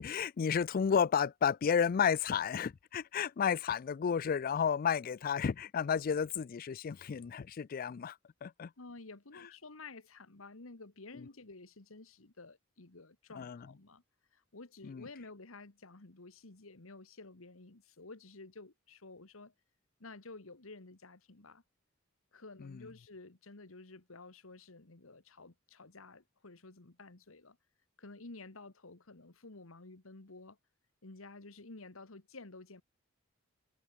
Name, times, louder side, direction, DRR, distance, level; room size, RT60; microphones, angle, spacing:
voice 1, 0.0-8.7 11.1-11.3 13.3-13.7 14.8-15.1 22.6-22.9, left 7 dB, 45° left, 0.4 m, -32 dB
voice 2, 8.8-14.0 14.3-19.5 20.0-21.6 22.3-27.6 28.0-30.6 31.0-32.8, left 3 dB, 85° left, 1.8 m, -52 dB
head